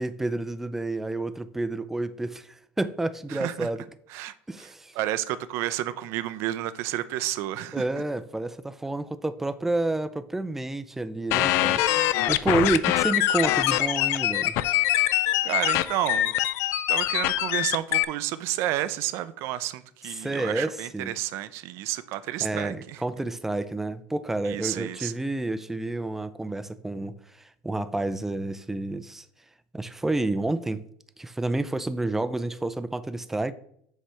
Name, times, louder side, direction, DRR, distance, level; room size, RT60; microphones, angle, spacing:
voice 1, 0.0-3.8 4.5-4.9 7.7-14.6 20.2-21.1 22.4-29.3 29.7-30.8 31.2-33.5, right 2 dB, 5° right, 0.4 m, -29 dB
voice 2, 3.3-3.7 4.1-4.3 4.6-4.7 4.9-7.8 14.9-15.1 15.4-16.3 16.9-23.0 24.4-25.1, right 13 dB, 65° right, 0.5 m, -31 dB
sound 1, 11.3-18.0, left 14 dB, 65° left, 0.4 m, -24 dB
7.7 x 3.3 x 5.6 m
cardioid pair, 130°, 5 cm